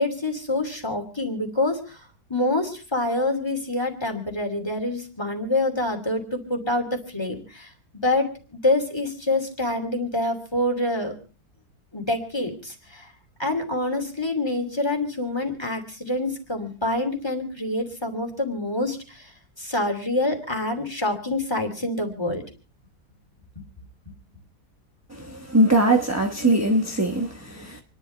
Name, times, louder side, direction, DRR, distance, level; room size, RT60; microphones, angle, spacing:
voice 1, 0.0-2.0 2.3-7.7 8.0-8.3 8.6-11.1 11.9-13.1 13.4-19.2 19.6-22.4, left 2 dB, 15° left, 2.8 m, -26 dB
voice 2, 25.1-27.8, right 1 dB, 10° right, 0.9 m, -21 dB
28.0 x 11.0 x 3.3 m
omnidirectional pair, 1.7 m